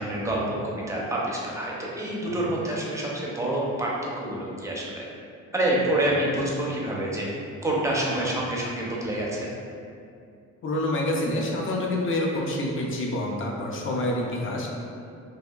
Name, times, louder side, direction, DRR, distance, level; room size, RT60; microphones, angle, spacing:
voice 1, 0.0-5.0 5.5-7.3 7.6-9.5, right 1 dB, 10° right, -4 dB, 0.5 m, -27 dB
voice 2, 10.6-14.7, left 1 dB, 45° left, -1 dB, 0.5 m, -27 dB
2.7 x 2.3 x 2.3 m, 2.4 s
cardioid pair, 90°, 30 cm